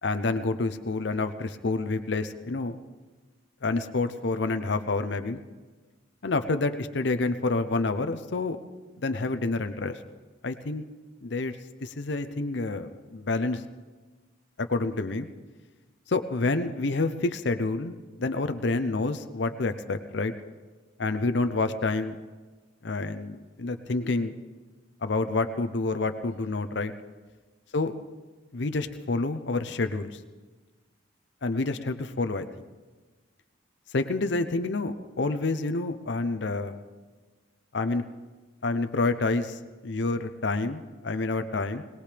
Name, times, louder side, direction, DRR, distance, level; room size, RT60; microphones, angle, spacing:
voice 1, 0.0-2.8 3.6-5.4 6.2-8.6 9.0-10.0 10.4-10.8 11.2-13.6 14.6-15.3 16.1-20.3 21.0-22.2 22.8-24.3 25.0-26.9 27.7-27.9 28.5-30.2 31.4-32.5 33.9-36.8 37.7-38.0 38.6-41.8, left 3 dB, 60° left, 9 dB, 0.7 m, -28 dB
21.5 x 19.0 x 3.4 m, 1.3 s
head